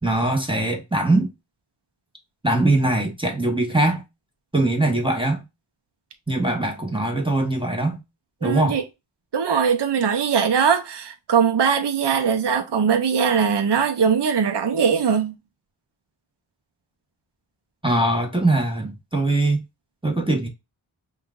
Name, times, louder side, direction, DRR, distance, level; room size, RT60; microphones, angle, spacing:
voice 1, 0.0-1.3 2.4-4.0 4.5-5.4 6.3-8.0 8.4-8.8 17.8-19.6 20.0-20.5, right 2 dB, 10° right, 1.0 m, -21 dB
voice 2, 8.4-8.8 9.3-15.3, right 6 dB, 55° right, 0.6 m, -21 dB
5.5 x 2.4 x 2.3 m
wide cardioid pair, 55°, 49 cm